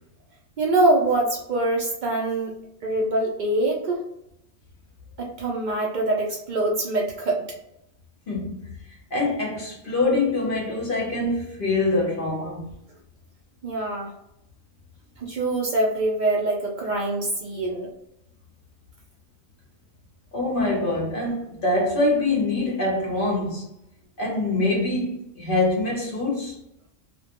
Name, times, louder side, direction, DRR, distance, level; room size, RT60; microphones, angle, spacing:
voice 1, 0.6-2.6 2.8-4.0 5.2-7.4 13.6-14.1 15.2-17.9, right 2 dB, 80° right, 0.4 m, -24 dB
voice 2, 8.3-8.7 9.1-12.7 20.3-23.6 24.2-26.6, left 2 dB, 50° left, 0.7 m, -24 dB
2.2 x 2.1 x 2.8 m
omnidirectional pair, 1.4 m